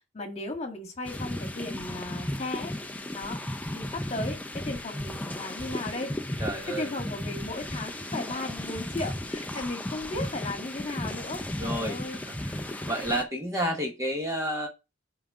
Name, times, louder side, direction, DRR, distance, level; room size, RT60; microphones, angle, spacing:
voice 1, 0.1-2.7 3.1-3.4 3.7-4.4 4.7-6.4 6.7-12.2, left 2 dB, 30° left, 2 dB, 1.8 m, -36 dB
sound 1, 1.0-13.2, left 1 dB, 5° left, 0.5 m, -35 dB
voice 2, 6.4-6.9 11.6-12.0 12.3-14.7, equal, 15° right, 1 dB, 1.2 m, -31 dB
5.8 x 5.0 x 4.8 m, 0.26 s
head